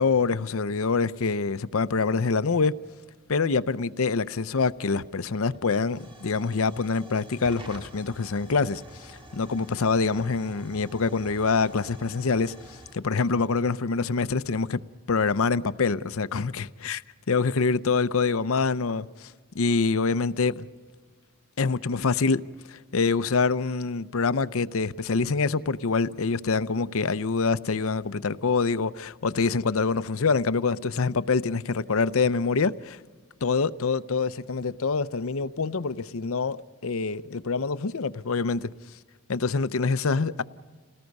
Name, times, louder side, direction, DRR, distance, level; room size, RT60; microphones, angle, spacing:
voice 1, 0.0-2.7 3.3-12.5 12.9-14.8 15.1-17.0 17.3-20.7 21.6-22.4 22.7-33.0 33.4-38.7 39.3-40.4, left 4 dB, 70° left, 0.6 m, -25 dB
Hiss / Fire / Tick, 4.3-14.7, equal, 25° right, 1.8 m, -49 dB
29.0 x 18.5 x 5.4 m
head